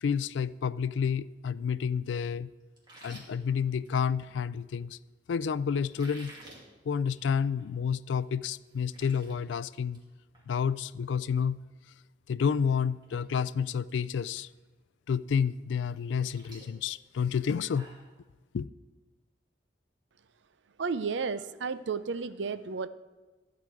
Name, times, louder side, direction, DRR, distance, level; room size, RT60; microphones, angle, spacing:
voice 1, 0.0-2.5 3.0-5.0 5.3-6.3 6.9-10.0 10.5-11.6 12.3-14.5 15.1-17.9 18.5-18.7, left 6 dB, 85° left, 0.3 m, -30 dB
sound 1, 2.8-4.3 5.8-6.6 7.0-7.2 7.6-7.7 8.2-8.3 8.6-9.3 9.7-10.0 10.3-10.5 12.3-12.4 12.9-13.2 13.4-13.9 14.4-14.5 15.8-18.1, right 1 dB, 25° right, 2.4 m, -52 dB
voice 2, 20.8-22.9, right 5 dB, 90° right, 0.5 m, -32 dB
13.5 x 4.9 x 8.3 m
head